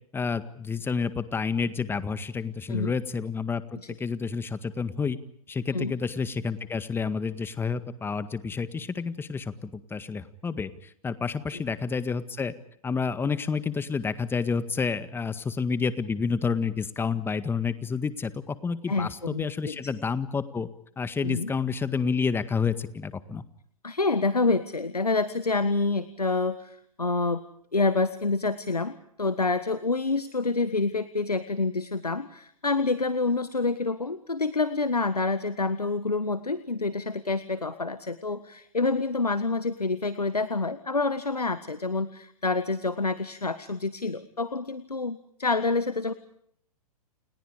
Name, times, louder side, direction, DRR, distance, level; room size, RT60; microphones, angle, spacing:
voice 1, 0.1-3.6 4.0-5.2 5.5-12.5 12.8-20.7 21.0-23.4, left 5 dB, 10° left, 14 dB, 1.8 m, -29 dB
voice 2, 18.9-19.8 21.2-21.5 23.8-27.4 27.7-46.1, left 3 dB, 90° left, 14 dB, 1.5 m, -27 dB
29.5 x 29.5 x 5.1 m, 0.69 s
figure-of-eight pair, 110°, 19 cm